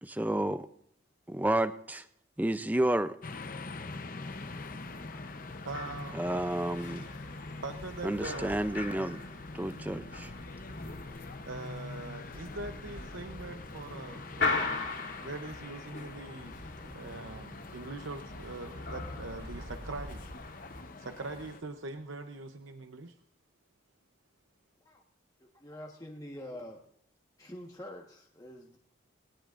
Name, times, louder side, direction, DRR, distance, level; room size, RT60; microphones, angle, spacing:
voice 1, 0.0-0.7 1.3-2.0 2.4-3.2 6.1-7.1 8.0-9.2 9.5-10.3, right 1 dB, 10° right, 12 dB, 0.5 m, -30 dB
sound 1, 3.2-21.6, left 3 dB, 45° left, 0.8 m, -45 dB
sound 2, 4.2-20.8, left 3 dB, 65° left, 3.2 m, -41 dB
Wind, 5.1-21.7 22.0-22.1 23.1-23.2, right 1 dB, 55° right, 1.5 m, -51 dB
voice 2, 5.6-6.2 7.5-8.6 11.4-20.3 21.0-23.1, right 3 dB, 75° right, 7 dB, 0.8 m, -42 dB
voice 3, 25.4-26.8 27.4-28.8, left 1 dB, 20° left, -1 dB, 1.3 m, -46 dB
20.0 x 18.5 x 2.6 m, 0.71 s
head